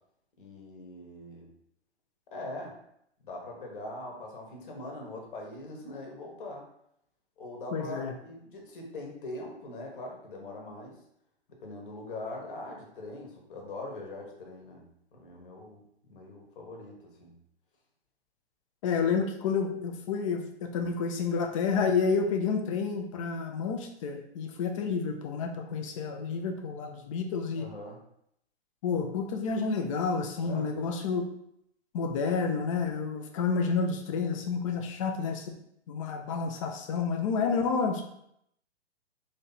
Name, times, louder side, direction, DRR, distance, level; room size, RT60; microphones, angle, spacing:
voice 1, 0.4-1.5 2.3-2.8 3.2-6.6 7.4-11.0 11.5-14.8 15.1-17.3 27.6-28.0 30.4-30.7, left 2 dB, 50° left, 0 dB, 1.2 m, -42 dB
voice 2, 7.7-8.1 18.8-27.7 28.8-31.2 31.9-35.5 35.9-38.0, left 5 dB, 30° left, 4 dB, 0.5 m, -30 dB
3.1 x 2.8 x 4.0 m, 0.74 s
figure-of-eight pair, 120°, 33 cm